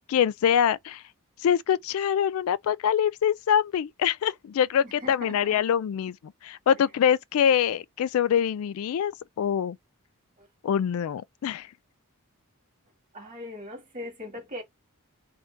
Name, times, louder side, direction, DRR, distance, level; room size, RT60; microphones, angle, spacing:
voice 1, 0.1-1.0 1.4-6.1 6.4-9.1 9.4-9.8 10.6-11.7, left 8 dB, 65° left, 0.3 m, -24 dB
voice 2, 4.8-5.6 10.4-10.5 13.1-14.6, left 1 dB, 40° right, 1.8 m, -40 dB
3.6 x 2.6 x 3.8 m
head